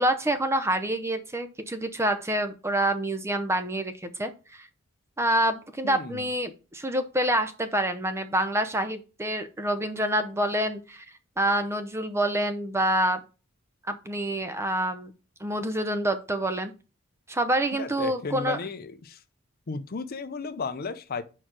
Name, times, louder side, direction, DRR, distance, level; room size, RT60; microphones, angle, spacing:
voice 1, 0.0-4.7 5.2-11.1 11.4-13.2 13.9-15.1 15.4-16.7 17.3-18.6, right 1 dB, 15° right, 0.6 m, -27 dB
voice 2, 5.8-6.2 17.8-19.2 19.7-21.2, left 4 dB, 45° left, 0.5 m, -34 dB
4.9 x 4.6 x 6.0 m
head